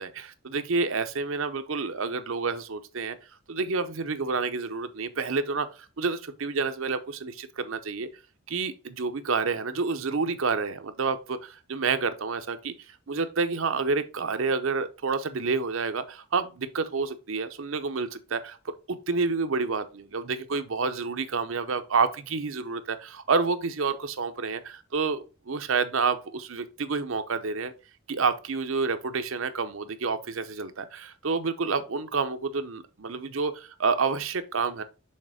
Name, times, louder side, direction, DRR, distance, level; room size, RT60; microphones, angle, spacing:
voice 1, 0.0-3.2 3.5-5.7 6.0-8.1 8.5-12.7 13.1-18.6 18.9-27.7 28.1-34.8, right 4 dB, 65° right, 0.7 m, -29 dB
6.5 x 3.6 x 4.9 m
head